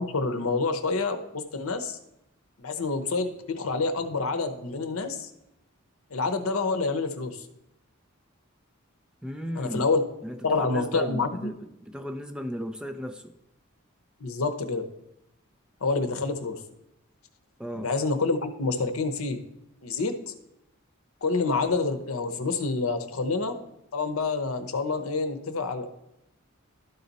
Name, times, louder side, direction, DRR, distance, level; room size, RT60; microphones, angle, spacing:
voice 1, 0.0-2.0 2.6-5.3 6.1-7.5 9.6-10.0 10.4-11.5 14.2-14.9 15.8-16.6 17.7-19.4 19.8-20.3 21.2-23.6 23.9-25.9, left 3 dB, 80° left, 9 dB, 0.8 m, -27 dB
voice 2, 9.2-9.8 10.2-13.3 17.6-17.9, equal, 5° right, 7 dB, 0.4 m, -35 dB
12.0 x 4.1 x 4.0 m, 0.88 s
head